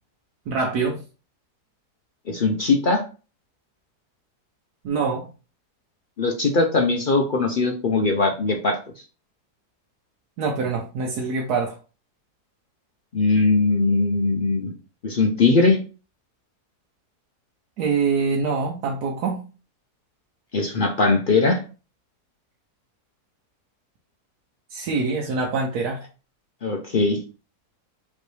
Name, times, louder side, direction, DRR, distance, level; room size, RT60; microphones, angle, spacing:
voice 1, 0.5-1.0 4.8-5.3 10.4-11.8 17.8-19.4 24.7-26.0, right 4 dB, 75° right, 0 dB, 1.2 m, -24 dB
voice 2, 2.3-3.0 6.2-8.8 13.1-14.7 15.0-15.8 20.5-21.6 26.6-27.2, left 3 dB, 65° left, 2 dB, 0.5 m, -20 dB
5.3 x 3.1 x 3.2 m, 0.34 s
omnidirectional pair, 1.7 m